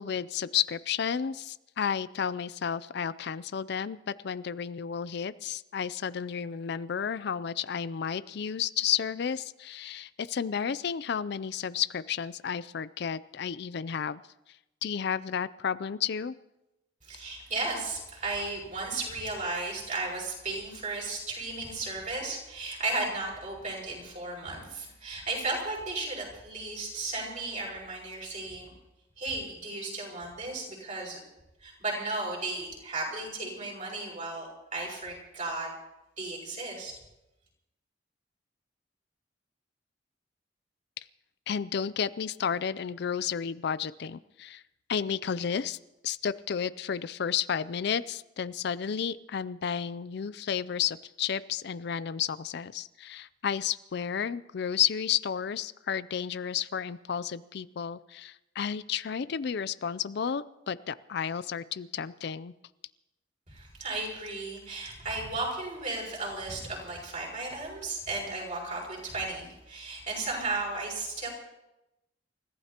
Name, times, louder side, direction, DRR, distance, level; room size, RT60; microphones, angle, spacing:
voice 1, 0.0-14.2 14.8-16.3 41.5-44.6 44.9-45.8 46.0-62.5, left 8 dB, 60° left, 16 dB, 0.4 m, -32 dB
voice 2, 17.0-28.7 29.2-31.2 31.6-35.7 36.2-36.9 63.5-71.3, right 2 dB, 40° right, -3 dB, 6.2 m, -35 dB
29.0 x 15.0 x 2.9 m, 0.93 s
head